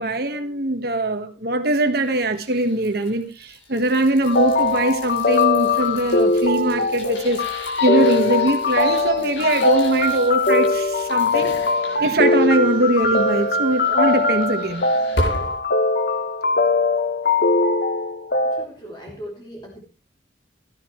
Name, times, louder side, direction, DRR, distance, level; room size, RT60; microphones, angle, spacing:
voice 1, 0.0-11.5 12.0-14.8, right 1 dB, 55° right, 1.5 m, -21 dB
sound 1, 1.9-15.6, left 1 dB, 85° left, 8.0 m, -35 dB
sound 2, 4.3-18.7, left 3 dB, 60° left, 1.1 m, -21 dB
voice 2, 18.5-19.8, equal, 25° left, 3.0 m, -38 dB
18.0 x 13.0 x 3.2 m
head